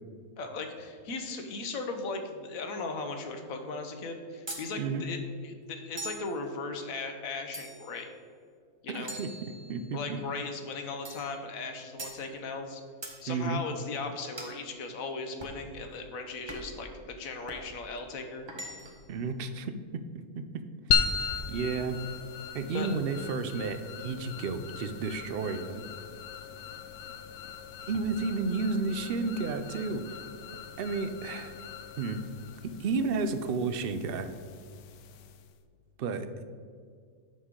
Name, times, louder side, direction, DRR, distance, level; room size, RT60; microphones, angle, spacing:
voice 1, 0.4-8.1 8.8-9.2 9.9-12.8 13.2-18.5 22.7-22.9, left 3 dB, 65° left, 6 dB, 1.3 m, -37 dB
sound 1, 4.5-4.7 6.0-6.3 7.5-8.0 9.1-10.0 11.0-11.3 12.0-12.2 13.0-13.2 14.4-14.6 15.4-15.6 16.5-16.8 17.5-17.7 18.5-19.1, right 2 dB, 25° right, 0.7 m, -42 dB
voice 2, 8.9-9.3 9.7-10.2 13.3-13.6 19.1-20.0 20.4-20.5 20.9-21.1 21.5-22.0 22.5-25.8 27.9-30.2 30.8-31.5 32.0-32.2 32.6-34.3 36.0-36.4, right 4 dB, 70° right, 9 dB, 0.5 m, -32 dB
sound 2, 20.9-35.6, left 6 dB, 85° left, 1.1 m, -37 dB
9.4 x 6.3 x 3.7 m, 2.1 s
omnidirectional pair, 1.6 m